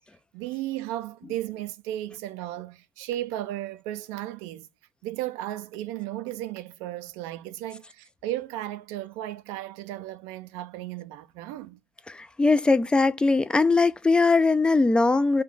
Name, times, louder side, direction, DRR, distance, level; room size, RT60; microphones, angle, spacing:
voice 1, 0.3-4.7 5.0-11.8, right 14 dB, 75° right, 0.4 m, -35 dB
voice 2, 12.1-15.4, left 3 dB, 15° left, 0.3 m, -21 dB
2.3 x 2.2 x 3.6 m
hypercardioid pair, 60°, 6 cm